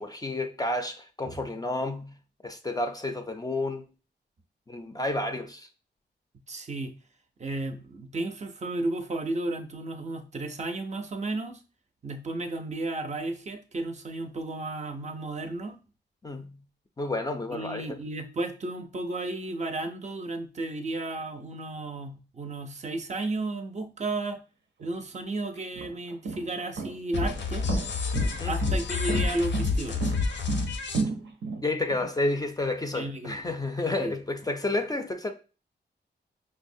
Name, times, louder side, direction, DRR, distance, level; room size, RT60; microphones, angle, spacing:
voice 1, 0.0-2.2 2.4-3.9 4.7-5.7 16.2-16.6 17.0-18.0 28.2-28.5 31.6-35.3, left 2 dB, 20° left, 0.3 m, -30 dB
voice 2, 6.5-6.9 7.4-11.6 12.0-15.8 17.5-24.4 24.8-27.7 28.5-30.1 32.9-33.4 34.0-34.1, right 2 dB, 40° right, 0.4 m, -33 dB
sound 1, 24.8-24.9 25.6-32.1, right 4 dB, 90° right, 0.6 m, -32 dB
sound 2, 27.1-31.0, left 4 dB, 85° left, 0.5 m, -28 dB
5.4 x 2.0 x 2.6 m
wide cardioid pair, 125°, 19 cm